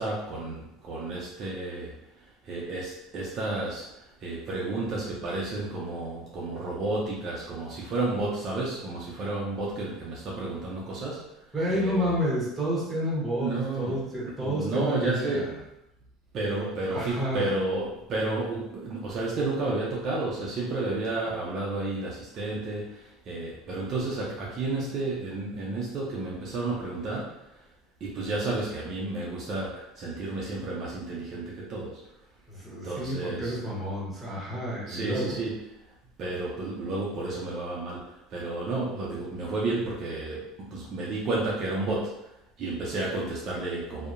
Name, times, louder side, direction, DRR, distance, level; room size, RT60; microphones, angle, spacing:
voice 1, 0.0-1.9 2.5-3.8 4.2-11.2 11.7-12.1 13.4-14.0 14.4-15.6 16.3-23.0 23.3-27.3 28.0-32.0 32.8-33.5 34.9-35.6 36.2-38.0 38.3-40.4 40.7-42.1 42.6-44.1, right 2 dB, 45° right, -4 dB, 0.5 m, -31 dB
voice 2, 11.5-15.5 16.4-17.5 32.5-35.4, equal, 10° right, -5 dB, 1.0 m, -30 dB
2.7 x 2.0 x 2.5 m, 0.84 s
supercardioid pair, 115°, 0 cm